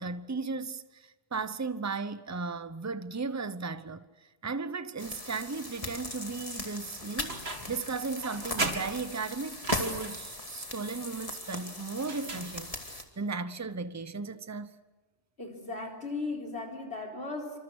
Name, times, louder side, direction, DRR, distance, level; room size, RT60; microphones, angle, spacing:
voice 1, 0.0-7.4 7.7-14.8, right 4 dB, 15° right, 0.7 m, -36 dB
sound 1, 5.0-13.0, left 2 dB, 30° left, 2.5 m, -39 dB
sound 2, 7.3-7.8 8.2-10.3 12.0-12.9, right 3 dB, 60° right, 2.8 m, -36 dB
voice 2, 15.4-17.6, left 3 dB, 60° left, 4.4 m, -37 dB
28.0 x 25.5 x 6.4 m
omnidirectional pair, 1.2 m